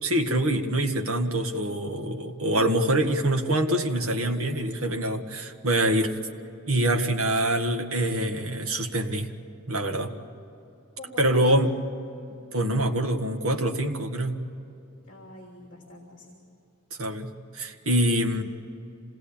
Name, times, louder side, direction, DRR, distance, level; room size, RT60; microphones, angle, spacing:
voice 1, 0.0-6.2 6.7-9.3 9.7-10.1 11.2-11.7 12.5-14.4 17.0-18.4, right 1 dB, 70° right, 4 dB, 1.8 m, -25 dB
voice 2, 11.0-11.4 15.0-16.4 18.2-18.4, left 1 dB, 35° left, -1 dB, 3.2 m, -46 dB
26.5 x 19.0 x 8.9 m, 2.8 s
head